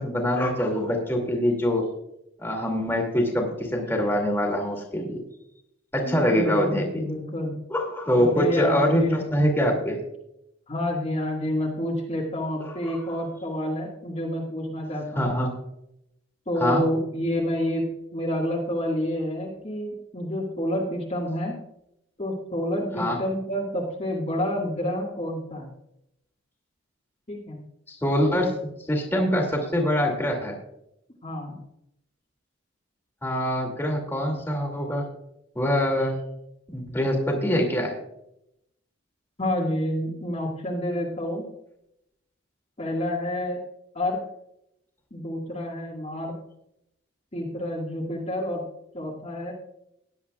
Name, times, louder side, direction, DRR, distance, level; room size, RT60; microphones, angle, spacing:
voice 1, 0.0-1.8 2.4-5.1 5.9-7.0 7.7-10.0 12.9-13.0 15.2-15.5 16.6-16.8 23.0-23.2 27.9-28.5 28.9-30.6 33.2-35.0 35.6-36.2 36.7-37.9, equal, 10° left, 0 dB, 2.5 m, -24 dB
voice 2, 6.0-7.6 8.3-9.2 10.7-15.3 16.5-21.6 22.2-25.7 27.3-27.6 31.2-31.6 39.4-41.5 42.8-43.6 43.9-44.2 45.1-46.3 47.3-48.6 48.9-49.5, left 1 dB, 35° left, -4 dB, 1.9 m, -29 dB
18.0 x 10.5 x 2.4 m, 0.80 s
head